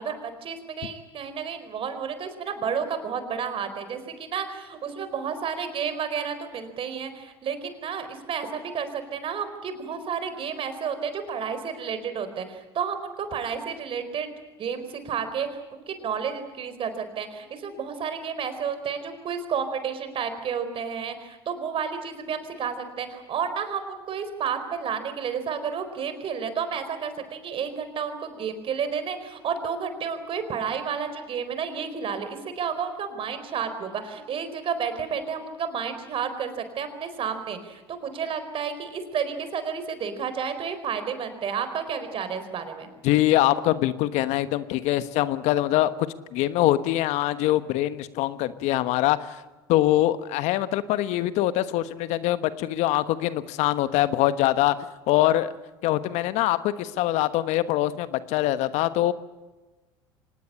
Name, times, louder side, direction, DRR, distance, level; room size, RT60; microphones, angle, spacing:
voice 1, 0.0-14.3 14.6-42.9, right 6 dB, 45° right, 9 dB, 4.3 m, -31 dB
voice 2, 43.0-46.1 46.3-49.4 49.7-54.7 55.1-55.5 55.8-59.1, left 14 dB, 60° left, 13 dB, 1.2 m, -23 dB
25.0 x 19.5 x 8.8 m, 1.2 s
hypercardioid pair, 75°, 13 cm